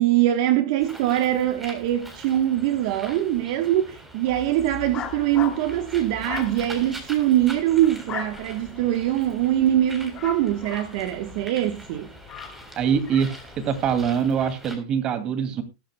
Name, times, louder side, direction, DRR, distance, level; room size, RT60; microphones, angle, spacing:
voice 1, 0.0-12.1, right 12 dB, 55° right, 1.2 m, -23 dB
Bird, 0.8-14.8, right 1 dB, 10° right, 3.6 m, -43 dB
sound 1, 4.2-14.2, left 9 dB, 30° left, 2.4 m, -40 dB
voice 2, 12.8-15.6, right 7 dB, 35° right, 2.3 m, -24 dB
20.0 x 10.5 x 2.2 m
supercardioid pair, 140°, 3 cm